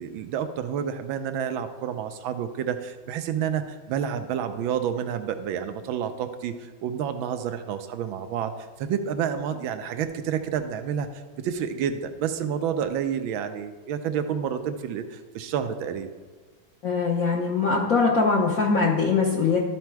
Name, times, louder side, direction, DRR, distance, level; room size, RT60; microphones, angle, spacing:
voice 1, 0.0-8.5 8.8-11.1 11.4-16.1, right 8 dB, 85° right, 8 dB, 1.4 m, -29 dB
voice 2, 16.8-19.6, left 4 dB, 55° left, -3 dB, 1.1 m, -22 dB
12.5 x 4.2 x 4.6 m, 1.4 s
omnidirectional pair, 2.2 m